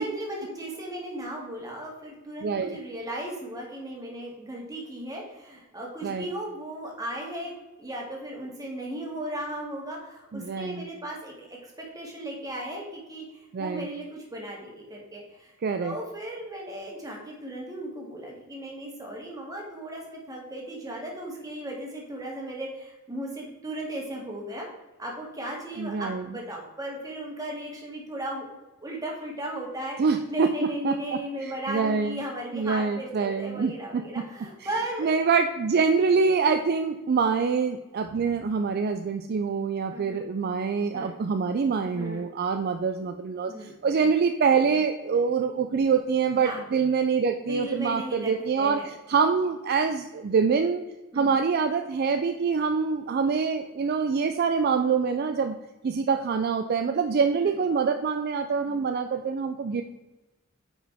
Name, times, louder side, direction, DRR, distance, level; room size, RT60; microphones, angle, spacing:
voice 1, 0.0-15.5 15.8-24.7 25.0-28.5 28.8-30.0 30.3-35.1 39.9-40.3 40.9-41.1 41.9-42.3 43.5-43.8 46.3-46.6 47.4-48.9 51.1-51.4 57.4-57.6 58.6-58.8, right 1 dB, 15° right, -2 dB, 1.9 m, -36 dB
voice 2, 2.4-2.8 6.0-6.3 10.3-10.8 13.5-13.9 15.6-15.9 25.8-26.3 30.0-32.2 32.5-34.2 35.0-50.8 51.1-55.6 55.8-59.8, right 5 dB, 45° right, 7 dB, 0.4 m, -25 dB
9.1 x 5.0 x 3.5 m, 1.1 s
head